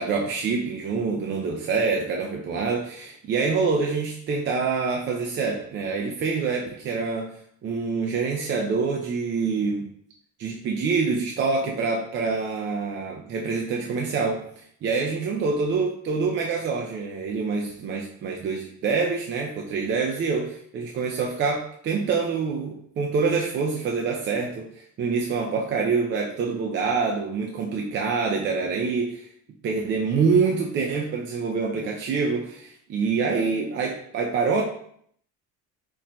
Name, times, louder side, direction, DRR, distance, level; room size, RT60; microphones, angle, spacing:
voice 1, 0.0-7.3 7.6-9.9 10.4-29.3 29.6-34.6, right 4 dB, 40° right, 0 dB, 0.5 m, -26 dB
4.3 x 2.7 x 4.2 m, 0.65 s
cardioid pair, 160°, 31 cm